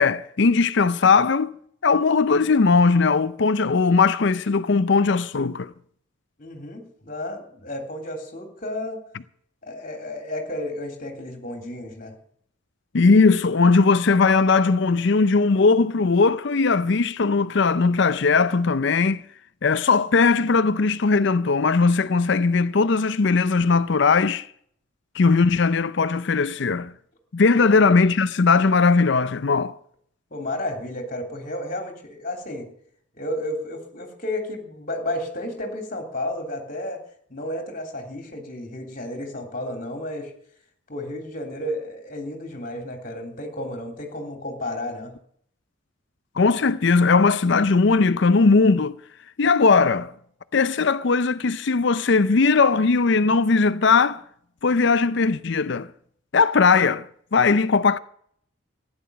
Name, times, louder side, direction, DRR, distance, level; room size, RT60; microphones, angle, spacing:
voice 1, 0.0-1.5 1.8-5.7 12.9-19.2 19.6-24.5 25.1-26.9 27.3-29.8 46.4-49.0 49.4-50.1 50.5-54.2 54.6-55.9 56.3-57.0 57.3-58.0, left 4 dB, 55° left, 0.5 m, -19 dB
voice 2, 6.4-9.0 9.6-12.2 27.6-27.8 30.3-32.7 33.1-37.0 37.3-40.3 40.9-45.1, left 1 dB, 40° left, 3.1 m, -32 dB
15.0 x 10.5 x 6.7 m
head